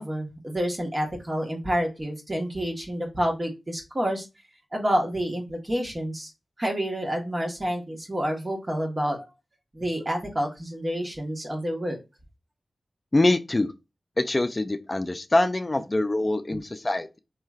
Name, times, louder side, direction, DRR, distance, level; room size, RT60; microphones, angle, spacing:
voice 1, 0.0-4.2 4.7-6.3 6.6-9.3 9.7-12.0, equal, 35° right, 1.2 m, -28 dB
voice 2, 13.1-13.7 14.2-17.2, left 2 dB, 35° left, 0.4 m, -24 dB
3.1 x 2.7 x 2.3 m
cardioid pair, 40°, 0 cm